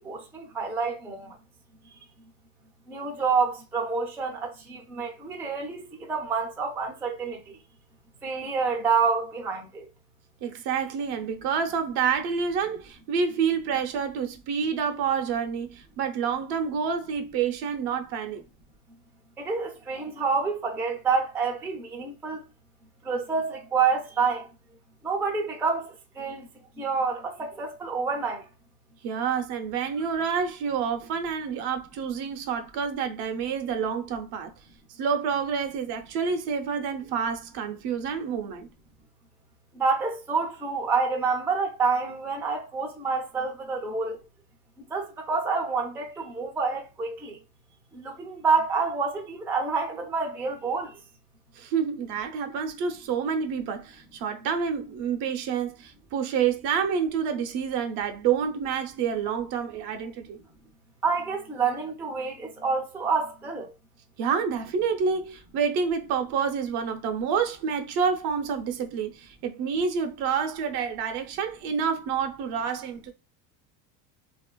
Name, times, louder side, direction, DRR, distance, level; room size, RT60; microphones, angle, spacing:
voice 1, 0.0-1.4 2.9-7.6 8.2-9.9 19.4-22.4 23.0-24.5 25.0-26.5 26.8-28.5 39.7-44.2 44.9-47.4 47.9-51.0 61.0-63.7, right 5 dB, 5° right, 0.3 m, -28 dB
voice 2, 10.4-18.4 29.0-34.5 34.9-38.7 51.5-60.4 64.2-73.1, right 6 dB, 60° right, 0.6 m, -28 dB
2.8 x 2.4 x 2.2 m
supercardioid pair, 110°, 46 cm